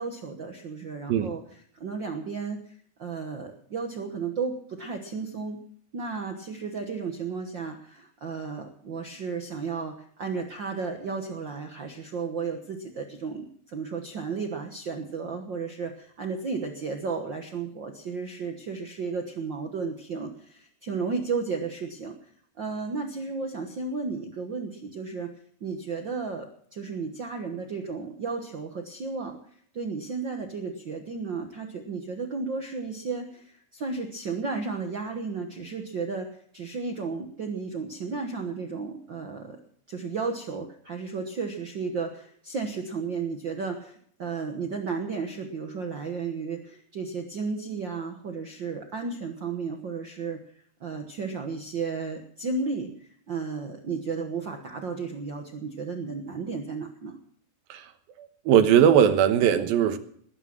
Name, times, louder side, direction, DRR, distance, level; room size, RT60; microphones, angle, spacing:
voice 1, 0.0-1.4 1.7-5.6 5.9-22.3 22.6-25.3 25.6-29.4 29.7-39.6 39.9-50.4 50.8-57.2, right 4 dB, 65° right, 4 dB, 1.1 m, -33 dB
voice 2, 58.2-60.0, right 9 dB, 85° right, 9 dB, 3.1 m, -20 dB
20.0 x 10.0 x 6.0 m, 0.62 s
omnidirectional pair, 4.1 m